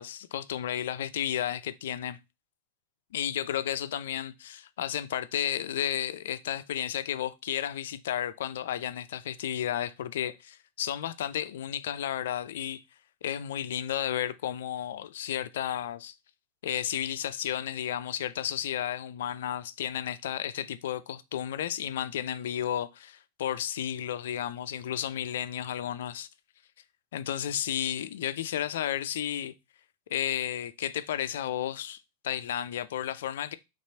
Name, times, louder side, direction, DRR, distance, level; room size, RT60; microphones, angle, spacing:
voice 1, 0.0-2.2 3.1-12.8 13.2-16.2 16.6-26.3 27.1-29.5 30.1-32.0 32.2-33.5, left 10 dB, 60° left, 0.3 m, -32 dB
4.3 x 3.0 x 2.7 m
figure-of-eight pair, 90°, 0 cm